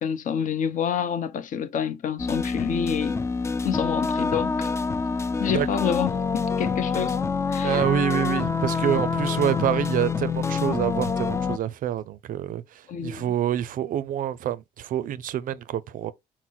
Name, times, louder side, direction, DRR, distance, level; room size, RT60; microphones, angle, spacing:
voice 1, 0.0-3.2 3.6-4.7 5.4-7.2 7.5-7.8 8.4-8.5 12.9-13.3, left 8 dB, 50° left, 0.8 m, -28 dB
sound 1, 2.2-11.6, left 5 dB, 15° left, 0.3 m, -26 dB
voice 2, 7.6-12.6 13.0-16.1, right 10 dB, 55° right, 0.4 m, -27 dB
6.0 x 2.1 x 3.8 m
cardioid pair, 110°, 17 cm